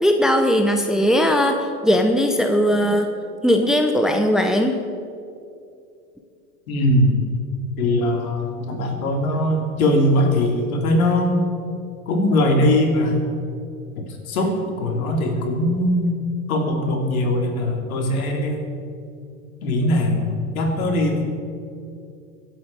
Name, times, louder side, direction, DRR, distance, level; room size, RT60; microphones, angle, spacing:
voice 1, 0.0-3.1 3.4-4.8, equal, ahead, 5 dB, 0.8 m, -18 dB
voice 2, 6.7-7.3 7.8-11.4 12.1-13.3 13.9-16.2 16.5-18.6 19.6-21.2, left 1 dB, 70° left, 1 dB, 3.3 m, -21 dB
24.0 x 8.5 x 4.7 m, 2.5 s
hypercardioid pair, 100°, 44 cm